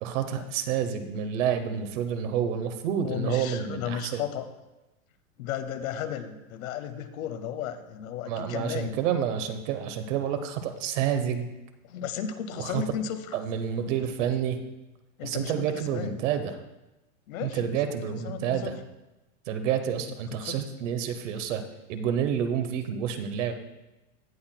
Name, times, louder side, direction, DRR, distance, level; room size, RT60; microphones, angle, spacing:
voice 1, 0.0-4.2 8.2-11.5 12.6-12.8 13.3-14.6 15.2-16.6 17.4-18.8 19.5-21.6 21.9-23.5, right 8 dB, 60° right, 8 dB, 0.9 m, -29 dB
voice 2, 3.0-4.5 5.4-9.0 11.8-13.2 15.2-16.2 17.3-17.7 18.2-18.8 20.4-20.6, left 9 dB, 75° left, 10 dB, 0.9 m, -34 dB
17.0 x 5.8 x 2.2 m, 1.0 s
supercardioid pair, 160°, 42 cm